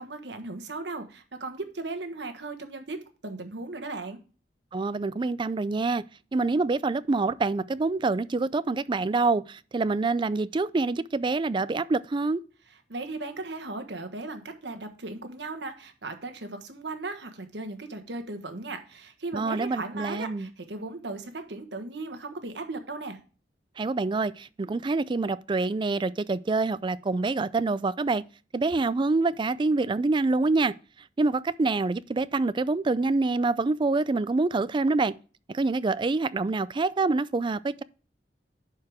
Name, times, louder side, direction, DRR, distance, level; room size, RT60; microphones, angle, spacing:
voice 1, 0.0-4.2 12.9-23.2, right 2 dB, 80° right, 1.3 m, -37 dB
voice 2, 4.7-6.0 6.3-12.4 19.3-20.5 23.8-28.2 28.5-30.7 31.2-35.1 35.5-37.8, right 3 dB, 30° right, 0.4 m, -26 dB
11.0 x 4.8 x 3.5 m
head